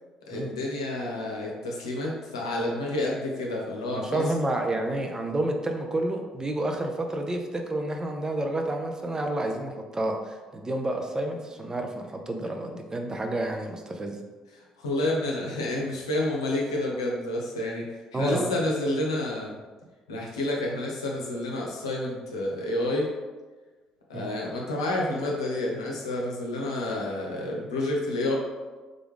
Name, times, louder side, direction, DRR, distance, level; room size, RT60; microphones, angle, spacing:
voice 1, 0.3-4.3 14.8-19.6 20.1-23.1 24.1-28.4, left 1 dB, 85° left, -2 dB, 0.7 m, -29 dB
voice 2, 3.9-14.2 18.1-18.5 24.1-24.3, right 1 dB, 25° right, 3 dB, 0.7 m, -30 dB
3.8 x 3.4 x 3.6 m, 1.3 s
figure-of-eight pair, 50°, 3 cm